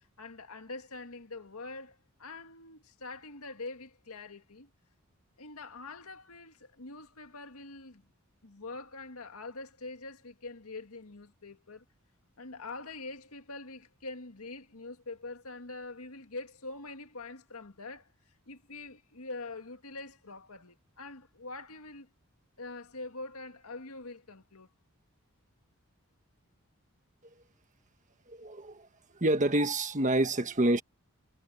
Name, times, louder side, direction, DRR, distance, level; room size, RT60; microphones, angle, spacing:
voice 1, 0.0-4.7 5.4-8.0 8.4-11.8 12.4-18.1 18.5-22.1 22.6-24.7, left 3 dB, 80° left, 2.0 m, -44 dB
voice 2, 28.3-28.9 29.1-30.8, right 1 dB, 35° right, 1.5 m, -27 dB
head